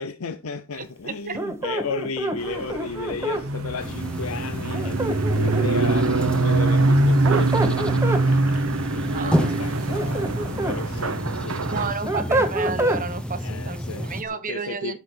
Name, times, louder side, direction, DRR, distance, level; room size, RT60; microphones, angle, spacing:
voice 1, 0.0-12.1 13.4-15.0, left 4 dB, 80° left, 0.7 m, -34 dB
voice 2, 0.8-1.4 9.1-9.6 11.7-15.0, right 5 dB, 40° right, 1.0 m, -32 dB
sound 1, 1.3-3.5 4.7-5.8 7.0-8.3 9.7-10.8 11.3-13.0, right 1 dB, 15° right, 1.1 m, -27 dB
sound 2, 2.4-11.9, right 2 dB, 70° right, 0.9 m, -23 dB
sound 3, 3.8-14.2, equal, 5° left, 0.8 m, -31 dB
8.1 x 6.0 x 4.4 m
head